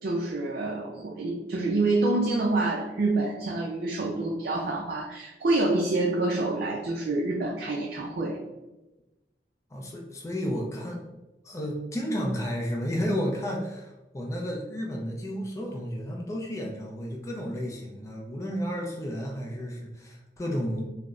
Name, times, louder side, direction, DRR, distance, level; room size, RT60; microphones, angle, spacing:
voice 1, 0.0-8.4, right 2 dB, 55° right, -3 dB, 0.4 m, -27 dB
voice 2, 9.7-11.0 11.4-20.8, equal, 15° left, -1 dB, 0.4 m, -32 dB
3.8 x 2.0 x 2.3 m, 1.0 s
head